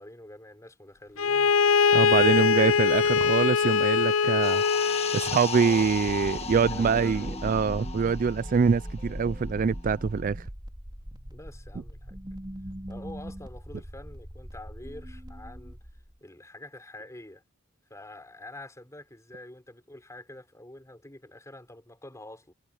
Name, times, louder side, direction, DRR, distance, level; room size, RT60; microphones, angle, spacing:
voice 1, 0.0-3.0 5.2-5.9 6.4-7.4 11.0-12.2 12.9-15.8 16.2-17.4 17.9-22.5, left 1 dB, 15° left, 4.2 m, -47 dB
Bowed string instrument, 1.2-5.4, left 5 dB, 75° left, 0.5 m, -22 dB
voice 2, 1.9-10.4, right 5 dB, 40° right, 0.4 m, -25 dB
sound 1, 4.4-9.5 9.7-9.9, left 5 dB, 30° left, 1.5 m, -36 dB
sound 2, 5.6-16.2, equal, 25° right, 4.1 m, -40 dB
head